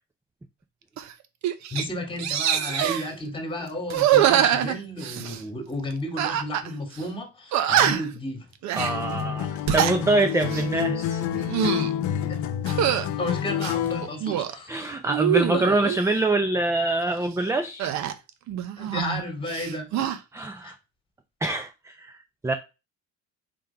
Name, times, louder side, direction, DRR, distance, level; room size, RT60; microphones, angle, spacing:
sound 1, 1.0-1.1 1.4-1.8 2.2-3.1 3.9-5.4 6.2-6.7 6.9-7.0 7.5-8.2 8.6-8.9 9.5-10.0 10.4-10.7 11.3-11.9 12.7-13.1 13.6-14.5 15.0-16.0 17.8-19.2 19.5-20.2, right 10 dB, 65° right, 0.9 m, -24 dB
voice 1, 1.7-8.4 12.3-12.5 13.2-14.7 15.5-15.7 18.8-19.9 20.6-20.7, left 1 dB, 15° left, 2.2 m, -32 dB
Acoustic guitar, 8.8-14.2, left 10 dB, 70° left, 0.8 m, -28 dB
voice 2, 8.8-11.3 14.7-17.9 20.3-20.8 21.4-22.5, right 2 dB, 10° right, 0.5 m, -25 dB
5.2 x 3.7 x 5.7 m
cardioid pair, 125°, 31 cm